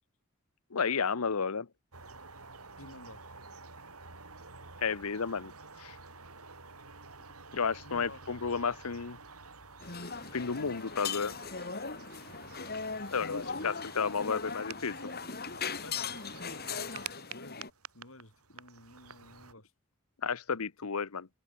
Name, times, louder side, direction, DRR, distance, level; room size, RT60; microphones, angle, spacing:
voice 1, 0.7-1.7 4.8-5.5 5.8-6.0 7.5-9.2 10.3-11.3 13.1-14.9 20.2-21.3, left 5 dB, 85° left, 0.9 m, -32 dB
sound 1, 1.9-19.5, right 5 dB, 90° right, 7.2 m, -50 dB
voice 2, 2.8-3.3 7.8-8.3 13.2-13.8 14.2-14.7 15.7-17.6 17.9-19.7, left 2 dB, 65° left, 6.7 m, -51 dB
sound 2, 9.8-17.7, left 5 dB, 45° left, 4.4 m, -39 dB
head